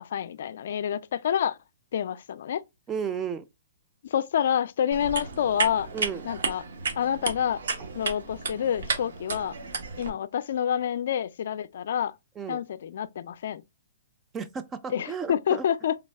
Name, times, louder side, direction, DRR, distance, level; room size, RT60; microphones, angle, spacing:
voice 1, 0.0-1.6 1.9-2.6 4.1-5.9 6.2-6.6 7.0-7.6 7.9-9.5 10.0-12.1 12.5-13.6 14.9-16.0, left 9 dB, 65° left, 0.3 m, -28 dB
voice 2, 2.9-3.5 5.9-6.3 12.4-12.6 14.3-15.6, right 6 dB, 20° right, 0.4 m, -33 dB
sound 1, 4.9-10.1, right 4 dB, 75° right, 1.0 m, -33 dB
3.4 x 2.2 x 3.3 m
hypercardioid pair, 145°, 0 cm